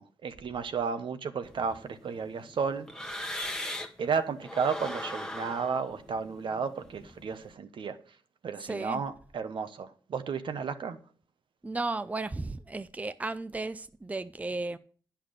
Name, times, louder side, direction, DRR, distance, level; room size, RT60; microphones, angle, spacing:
voice 1, 0.0-2.9 4.0-8.0 8.4-11.0, right 5 dB, 70° right, 1.0 m, -33 dB
sound 1, 1.4-4.1 4.4-7.5, left 1 dB, 5° left, 1.2 m, -40 dB
voice 2, 8.6-9.0 11.6-14.8, right 2 dB, 15° right, 0.5 m, -34 dB
10.0 x 5.8 x 6.5 m
cardioid pair, 75°, 9 cm